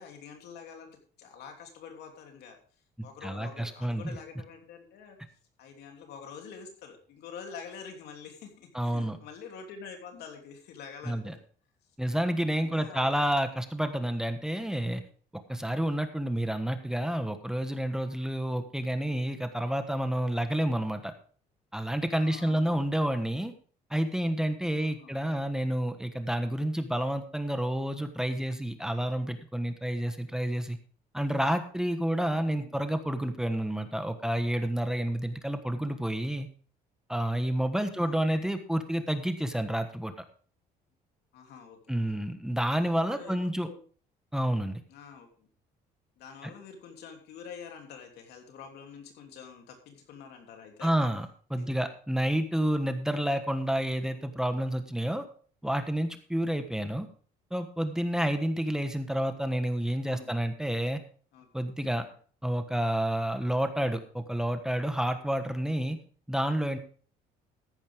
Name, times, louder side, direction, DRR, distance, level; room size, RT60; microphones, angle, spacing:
voice 1, 0.0-2.6 3.0-5.2 5.6-11.4 12.5-13.2 22.2-22.8 24.8-25.5 32.4-32.8 37.9-38.4 41.3-42.1 42.8-43.8 44.9-45.5 46.2-50.9 51.6-51.7 60.0-60.4 61.3-61.5 62.0-62.1, left 6 dB, 75° left, 3 dB, 3.2 m, -47 dB
voice 2, 3.2-4.1 8.7-9.2 11.0-11.3 12.0-15.0 15.5-21.1 21.7-23.5 23.9-30.8 31.1-36.5 37.1-40.1 41.9-43.7 44.3-44.8 50.8-55.2 55.6-57.1 57.5-61.0 61.5-62.1 62.4-66.0 66.3-66.8, right 1 dB, 5° right, 7 dB, 1.3 m, -29 dB
14.0 x 10.5 x 3.6 m, 0.43 s
cardioid pair, 110°, 17 cm